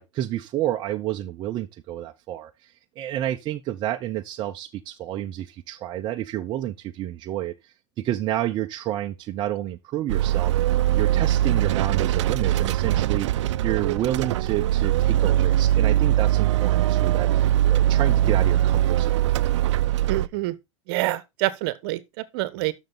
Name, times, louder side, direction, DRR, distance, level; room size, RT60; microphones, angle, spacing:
voice 1, 0.0-2.5 3.0-10.5 10.9-13.3 13.6-19.2, right 13 dB, 30° right, 0.7 m, -30 dB
sound 1, 10.1-20.3, right 13 dB, 75° right, 0.5 m, -21 dB
voice 2, 20.1-20.5 20.9-22.7, right 17 dB, 55° right, 1.1 m, -27 dB
11.5 x 6.6 x 3.9 m
supercardioid pair, 140°, 15 cm